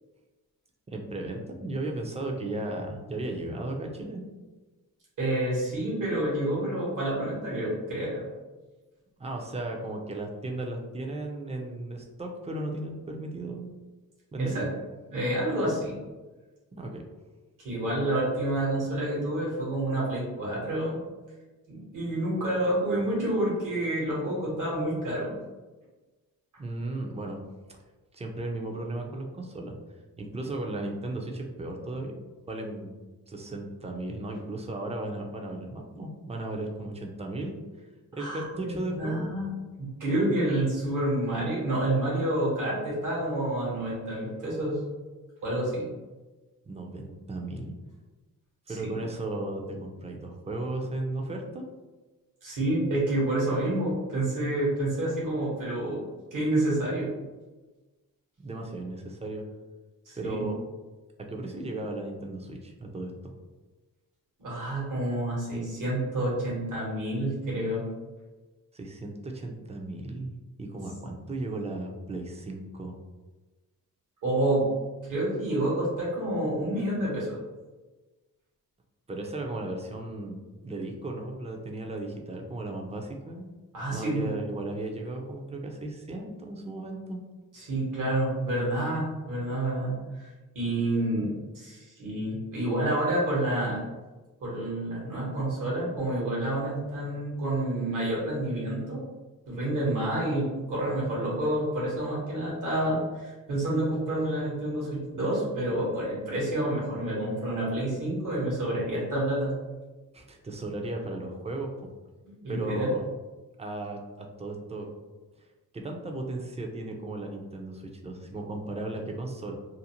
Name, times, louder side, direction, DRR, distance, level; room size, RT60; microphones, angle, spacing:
voice 1, 0.9-4.2 9.2-13.7 14.3-14.7 16.8-17.0 26.6-27.4 28.1-29.8 30.2-32.2 32.5-32.9 33.3-37.7 38.1-39.3 46.7-47.7 48.7-51.6 58.4-59.4 60.2-60.6 61.2-63.3 68.7-70.3 70.6-72.9 79.1-80.4 80.6-83.5 83.9-87.2 110.1-111.7 112.5-113.0 113.6-114.9 115.7-119.5, right 2 dB, 20° right, 1 dB, 0.4 m, -35 dB
voice 2, 5.2-8.3 14.4-14.7 15.1-15.9 17.6-21.0 21.7-25.4 38.1-39.5 39.8-44.8 45.4-45.9 48.7-48.9 52.4-56.0 56.3-57.1 60.1-60.4 64.4-67.9 74.2-74.7 75.0-77.4 83.7-84.3 87.5-90.3 90.5-93.8 94.4-99.0 99.5-109.5 112.2-112.9, right 1 dB, 60° right, -6 dB, 1.1 m, -28 dB
2.6 x 2.0 x 2.8 m, 1.2 s
cardioid pair, 80°, 35 cm